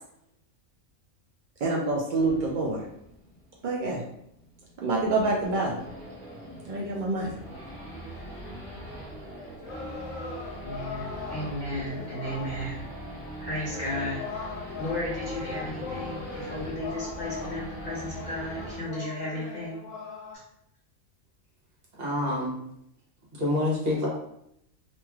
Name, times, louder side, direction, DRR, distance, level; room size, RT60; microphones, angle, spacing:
voice 1, 1.6-2.8 3.6-4.0 4.8-5.8 6.7-7.3, right 2 dB, 90° right, -3 dB, 0.4 m, -26 dB
Race car auto racing / Idling / Accelerating revving vroom, 2.2-18.8, right 1 dB, ahead, 1.1 m, -41 dB
sound 1, 9.6-12.7 13.6-20.3, left 4 dB, 75° left, 1.0 m, -39 dB
voice 2, 10.6-12.8 13.4-19.8 20.3-20.4, left 1 dB, 45° left, -7 dB, 0.7 m, -34 dB
voice 3, 22.0-22.7 23.3-24.1, left 1 dB, 50° right, -5 dB, 1.1 m, -27 dB
3.0 x 2.6 x 2.3 m, 0.75 s
omnidirectional pair, 1.4 m